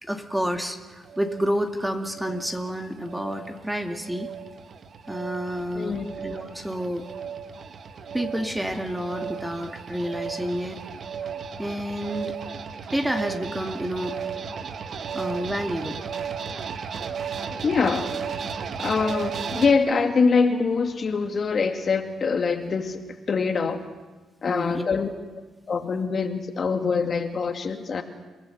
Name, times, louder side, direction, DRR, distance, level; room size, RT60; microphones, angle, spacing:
voice 1, 0.0-4.3 5.1-7.1 8.1-10.8 11.6-12.4 12.9-14.2 15.1-16.0 24.5-24.8, equal, 5° right, 5 dB, 2.2 m, -29 dB
sound 1, 0.8-19.7, right 6 dB, 55° right, 1.5 m, -35 dB
voice 2, 5.7-6.1 17.6-18.1 18.8-23.0 23.3-23.8 24.4-25.1 25.7-28.0, left 5 dB, 45° left, 6 dB, 2.3 m, -24 dB
29.5 x 18.0 x 8.0 m, 1.2 s
cardioid pair, 90°, 0 cm